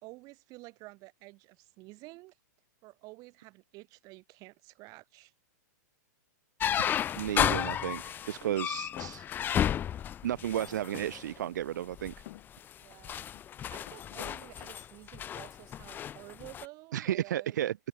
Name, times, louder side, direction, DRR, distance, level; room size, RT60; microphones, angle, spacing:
voice 1, 0.0-2.4 2.8-5.3 9.5-9.6 12.8-13.3 13.7-17.6, right 23 dB, 40° right, 3.1 m, -51 dB
sound 1, 6.6-11.2 11.9-12.2 12.7-16.6, left 10 dB, 20° left, 0.6 m, -33 dB
voice 2, 7.2-9.3 10.2-12.1 16.9-17.7, right 11 dB, 75° right, 0.5 m, -33 dB
sound 2, 8.3-9.2 10.0-10.1 10.9-11.8 12.3-12.5 13.3-14.4, left 17 dB, 55° left, 7.7 m, -51 dB
open air
hypercardioid pair, 130°, 10 cm